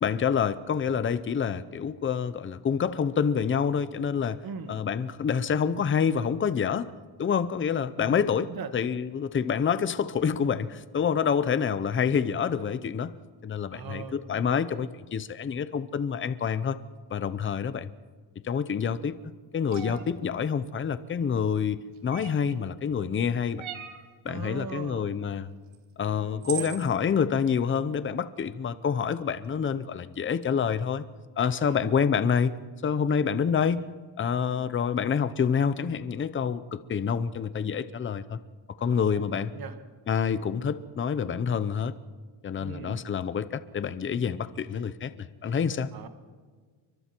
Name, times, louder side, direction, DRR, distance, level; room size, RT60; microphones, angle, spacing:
voice 1, 0.0-4.4 4.7-6.9 7.2-13.1 13.4-16.8 17.1-17.9 18.4-19.1 19.5-23.7 24.2-25.5 26.0-31.0 31.4-32.5 32.8-33.8 34.2-38.4 38.8-39.5 40.1-42.0 42.4-45.9, left 7 dB, 25° left, 14 dB, 0.7 m, -27 dB
voice 2, 4.4-4.8 8.0-8.7 13.7-14.6 19.8-20.0 24.3-25.1 26.0-26.7 31.6-31.9 34.5-34.7 38.8-39.8 42.6-43.0 45.9-46.1, right 6 dB, 45° right, 8 dB, 1.9 m, -41 dB
sound 1, 19.7-20.0 22.1-22.5 23.6-24.0 25.7-25.8 26.4-26.8, right 10 dB, 80° right, 2.2 m, -37 dB
29.5 x 24.0 x 4.5 m, 1.5 s
cardioid pair, 175°, 48 cm